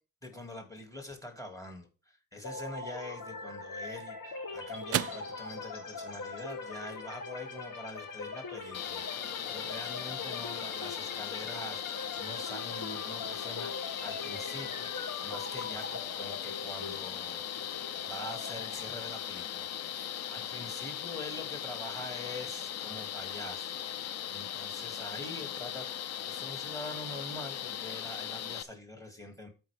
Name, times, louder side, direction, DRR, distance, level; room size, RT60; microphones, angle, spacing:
voice 1, 0.2-25.9 26.2-29.5, left 1 dB, 10° left, 2.2 m, -45 dB
sound 1, 2.4-20.2, left 4 dB, 75° left, 3.1 m, -42 dB
sound 2, 3.6-12.2, right 12 dB, 45° right, 0.5 m, -43 dB
sound 3, 8.7-28.6, left 10 dB, 50° left, 0.6 m, -39 dB
14.0 x 4.7 x 3.4 m
cardioid pair, 135°, 33 cm